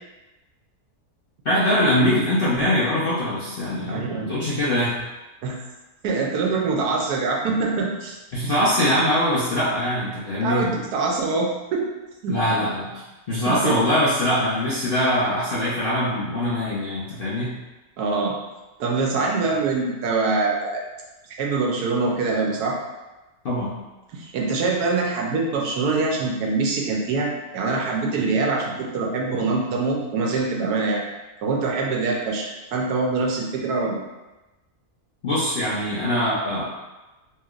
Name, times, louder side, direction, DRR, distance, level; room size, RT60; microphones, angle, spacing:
voice 1, 1.4-5.0 8.3-10.7 12.3-13.0 13.3-17.5 23.4-23.7 35.2-36.6, left 1 dB, 55° left, -9 dB, 0.6 m, -22 dB
voice 2, 3.9-4.3 5.4-5.6 6.0-8.2 10.4-11.9 12.2-12.4 13.5-13.7 18.0-18.4 18.8-20.8 21.4-22.8 24.1-31.0 31.4-34.0, right 3 dB, 85° right, -1 dB, 1.2 m, -24 dB
3.2 x 2.8 x 2.4 m, 1.1 s
omnidirectional pair, 1.6 m